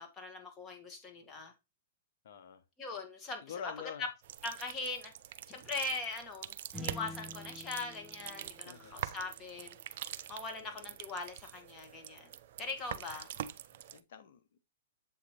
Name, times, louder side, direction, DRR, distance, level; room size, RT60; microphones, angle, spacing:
voice 1, 0.0-1.5 2.8-3.7 4.4-5.1 5.5-10.0 10.3-12.3 12.6-13.3, left 3 dB, 20° left, 1.8 m, -41 dB
voice 2, 2.2-2.6 3.4-4.1 8.6-9.0 10.6-10.9 13.7-14.6, left 7 dB, 65° left, 1.1 m, -47 dB
sound 1, 4.2-14.0, right 11 dB, 60° right, 0.5 m, -45 dB
sound 2, 6.7-9.4, left 1 dB, 15° right, 1.0 m, -48 dB
7.5 x 3.3 x 4.3 m
hypercardioid pair, 120°, 0 cm